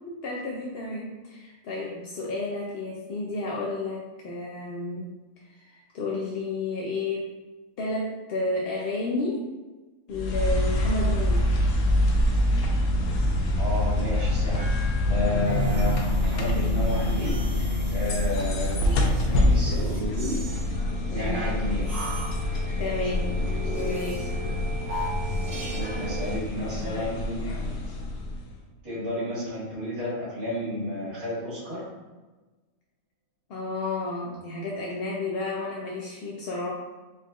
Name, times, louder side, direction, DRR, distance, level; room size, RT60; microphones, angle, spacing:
voice 1, 0.1-7.3 7.8-9.5 10.1-11.6 18.8-19.6 21.1-21.5 22.8-23.3 23.7-24.4 33.5-36.7, left 2 dB, 65° left, -3 dB, 0.6 m, -32 dB
sound 1, 10.1-28.6, left 1 dB, 90° left, 1.1 m, -26 dB
voice 2, 13.6-17.4 17.9-18.8 19.3-20.4 21.1-21.9 25.4-27.4 28.8-31.8, left 1 dB, 70° right, -12 dB, 2.2 m, -32 dB
sound 2, 14.5-26.4, right 2 dB, 50° right, 1.5 m, -38 dB
sound 3, 15.0-25.8 26.2-26.3, right 1 dB, 30° right, 1.1 m, -36 dB
4.1 x 3.7 x 2.4 m, 1.2 s
omnidirectional pair, 1.5 m